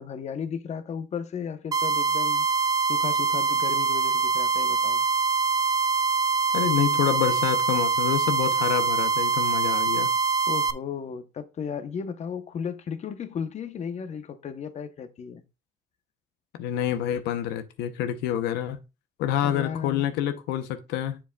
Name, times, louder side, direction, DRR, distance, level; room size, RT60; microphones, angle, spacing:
voice 1, 0.0-2.5 2.9-5.0 10.5-15.4 19.4-20.1, left 7 dB, 40° left, 0.8 m, -34 dB
sound 1, 1.7-10.7, right 5 dB, 20° right, 0.5 m, -24 dB
voice 2, 6.5-10.1 16.6-18.8 19.2-21.2, left 10 dB, 90° left, 0.7 m, -27 dB
7.3 x 7.0 x 2.3 m
cardioid pair, 110°, 17 cm